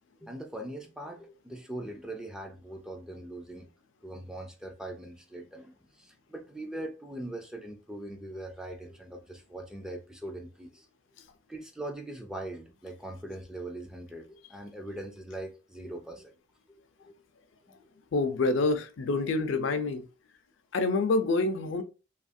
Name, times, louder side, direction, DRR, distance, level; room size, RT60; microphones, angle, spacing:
voice 1, 0.2-3.7 4.0-10.9 11.5-16.3 17.0-17.1 17.6-17.8, right 1 dB, 5° right, 0.3 m, -41 dB
voice 2, 18.1-20.0 20.7-21.8, left 3 dB, 65° left, 0.4 m, -27 dB
2.7 x 2.4 x 2.5 m
head